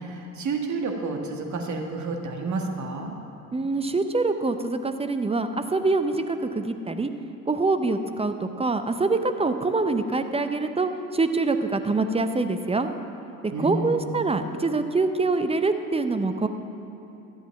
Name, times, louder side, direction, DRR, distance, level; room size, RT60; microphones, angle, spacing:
voice 1, 0.0-3.1 13.5-14.2, right 3 dB, 40° right, 3 dB, 1.7 m, -30 dB
voice 2, 3.5-7.1 7.5-12.9 13.6-16.5, right 3 dB, 15° right, 8 dB, 0.7 m, -25 dB
13.5 x 8.2 x 5.8 m, 3.0 s
hypercardioid pair, 65°, 44 cm